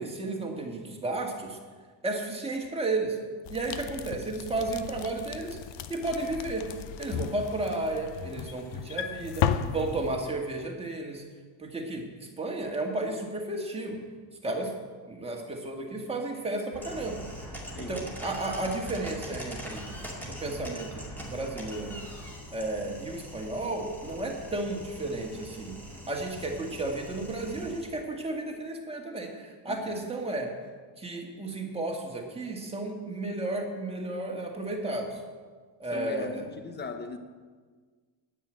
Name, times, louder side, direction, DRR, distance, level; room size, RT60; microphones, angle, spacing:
voice 1, 0.0-1.6 2.0-3.2 3.5-5.6 5.9-6.7 7.0-11.2 11.6-14.0 14.4-14.7 15.1-17.2 17.8-19.9 20.3-22.0 22.5-25.8 26.1-30.5 31.0-35.2 35.8-36.4, right 2 dB, 15° right, 1 dB, 1.8 m, -33 dB
sound 1, 3.5-10.1, left 8 dB, 70° left, 0.9 m, -34 dB
sound 2, 16.7-27.9, equal, 5° left, 2.2 m, -42 dB
voice 2, 17.7-18.1 26.6-26.8 29.7-30.1 35.9-37.2, left 4 dB, 25° left, 8 dB, 1.0 m, -40 dB
9.8 x 9.5 x 8.9 m, 1.5 s
cardioid pair, 160°, 45 cm